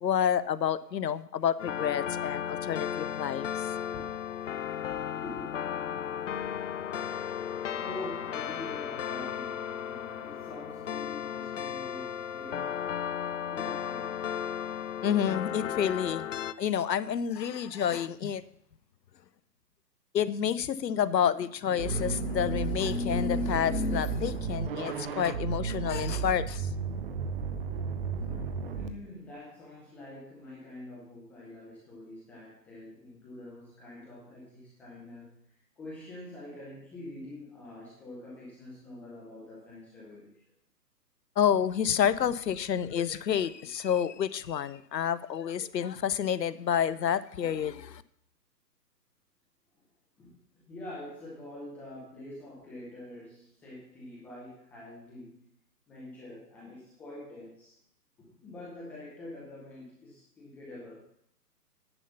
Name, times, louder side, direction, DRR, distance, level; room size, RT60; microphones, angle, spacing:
voice 1, 0.0-3.7 15.0-16.3 16.6-18.4 20.1-26.7 28.2-28.5 41.4-48.0, left 8 dB, 80° left, 17 dB, 0.7 m, -29 dB
sound 1, 1.6-16.5, left 9 dB, 50° left, 0.5 m, -35 dB
voice 2, 3.7-4.3 4.9-6.0 6.3-6.5 7.8-12.8 13.5-14.1 28.7-35.3 35.8-40.4 50.2-55.5 55.9-57.7 58.2-61.1, left 1 dB, 5° left, -7 dB, 0.6 m, -46 dB
sound 2, 21.8-28.9, right 7 dB, 35° right, 0.7 m, -33 dB
9.9 x 5.5 x 7.0 m, 0.69 s
hypercardioid pair, 140°, 49 cm